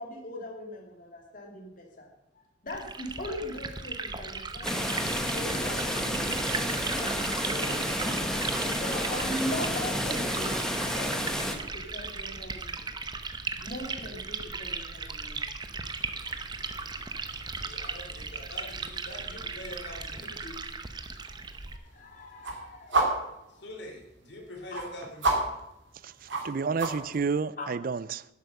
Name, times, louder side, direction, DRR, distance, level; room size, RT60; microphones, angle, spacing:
voice 1, 0.0-2.1 2.6-4.8 5.3-8.2 8.7-12.9 13.6-15.4 16.1-16.2 16.6-17.0 20.4-20.5 21.2-21.4 21.8-23.1 23.5-23.6 24.6-24.7 27.6-27.7, left 1 dB, 45° left, 2.7 m, -40 dB
Liquid, 2.7-21.8, right 4 dB, 25° right, 0.8 m, -37 dB
sound 1, 4.6-11.5, equal, 5° left, 1.2 m, -30 dB
sound 2, 16.0-27.2, right 2 dB, 75° right, 2.5 m, -35 dB
voice 2, 17.6-20.3 23.5-25.5, left 1 dB, 65° left, 3.0 m, -44 dB
voice 3, 26.0-28.3, right 5 dB, 50° right, 0.4 m, -30 dB
11.5 x 8.1 x 6.6 m
head